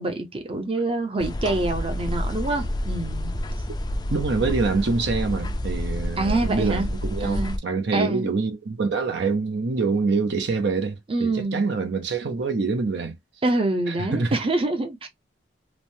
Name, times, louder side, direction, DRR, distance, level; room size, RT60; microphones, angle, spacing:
voice 1, 0.0-3.3 6.2-6.9 7.2-7.6 7.9-8.3 11.1-11.7 13.4-15.1, right 2 dB, 30° right, 0.6 m, -26 dB
sound 1, 1.2-7.6, left 1 dB, 25° left, 0.4 m, -29 dB
voice 2, 4.1-13.2 13.9-14.4, right 4 dB, 70° right, 0.6 m, -25 dB
3.1 x 2.1 x 2.6 m
head